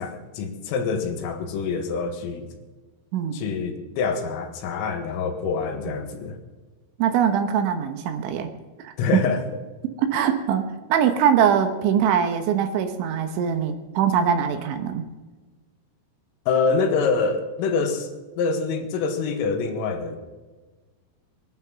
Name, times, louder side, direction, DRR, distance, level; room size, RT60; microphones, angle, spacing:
voice 1, 0.0-2.5 3.3-6.4 9.0-9.4 16.5-18.1 18.4-20.2, left 4 dB, 85° left, 4 dB, 4.3 m, -25 dB
voice 2, 3.1-3.4 7.0-8.5 8.8-8.9 10.0-15.1, right 8 dB, 75° right, 7 dB, 3.3 m, -22 dB
21.0 x 12.0 x 5.9 m, 1.3 s
omnidirectional pair, 5.9 m